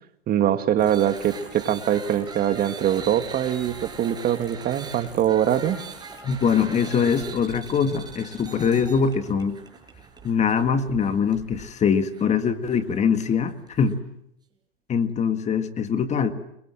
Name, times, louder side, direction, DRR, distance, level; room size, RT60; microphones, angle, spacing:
voice 1, 0.3-5.8, right 10 dB, 30° right, 9 dB, 2.0 m, -23 dB
sound 1, 0.8-14.0, right 5 dB, 15° right, 6.3 m, -41 dB
voice 2, 6.2-9.6 10.2-14.0 14.9-16.3, left 6 dB, 25° left, 9 dB, 1.8 m, -23 dB
29.5 x 23.0 x 7.5 m, 0.77 s
hypercardioid pair, 125°, 30 cm